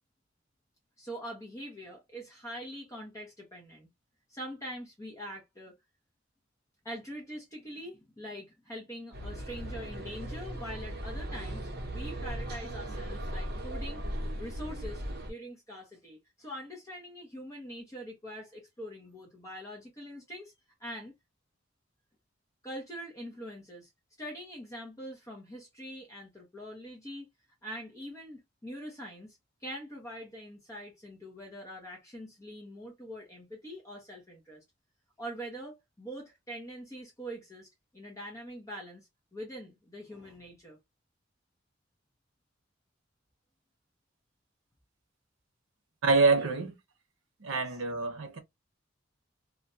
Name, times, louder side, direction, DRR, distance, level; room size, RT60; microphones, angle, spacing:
voice 1, 1.0-3.9 4.3-5.7 6.8-14.0 14.4-20.5 20.8-21.1 22.6-23.9 24.2-27.3 27.6-34.6 35.2-40.8 46.4-46.5 47.5-47.6, equal, 15° left, 0.7 m, -43 dB
sound 1, 9.1-15.3, right 1 dB, 55° right, 0.7 m, -37 dB
voice 2, 46.0-46.7 47.4-48.4, right 3 dB, 85° right, 0.7 m, -26 dB
2.5 x 2.1 x 2.5 m
head